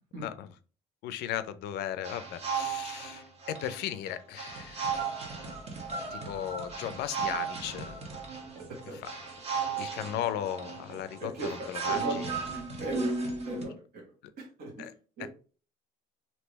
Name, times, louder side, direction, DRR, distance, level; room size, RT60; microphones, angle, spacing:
voice 1, 0.2-0.5 1.0-4.9 6.1-8.0 8.9-9.1 9.8-12.3 14.8-14.9 15.2-15.3, left 11 dB, 80° left, 12 dB, 0.4 m, -36 dB
sound 1, 2.0-13.6, right 5 dB, 40° right, 1.2 m, -35 dB
voice 2, 8.6-9.0 11.2-12.3 12.8-13.1 13.5-14.0 14.6-14.7 15.2-15.3, right 2 dB, 65° right, -2 dB, 1.3 m, -37 dB
3.3 x 2.7 x 3.1 m, 0.38 s
cardioid pair, 110°, 17 cm